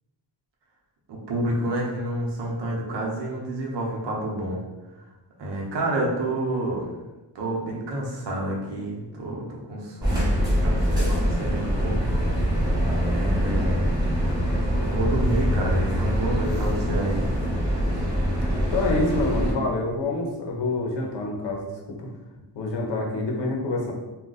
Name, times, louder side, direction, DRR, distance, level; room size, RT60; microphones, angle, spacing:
voice 1, 1.1-4.6 5.4-6.9 7.3-12.0 13.1-13.9 14.9-17.4, right 1 dB, 75° right, -2 dB, 0.8 m, -29 dB
sound 1, 10.0-19.5, equal, 10° right, 1.0 m, -24 dB
voice 2, 18.7-22.1 22.6-23.9, left 2 dB, 75° left, 0 dB, 0.7 m, -27 dB
2.4 x 2.2 x 3.8 m, 1.1 s
wide cardioid pair, 130°, 43 cm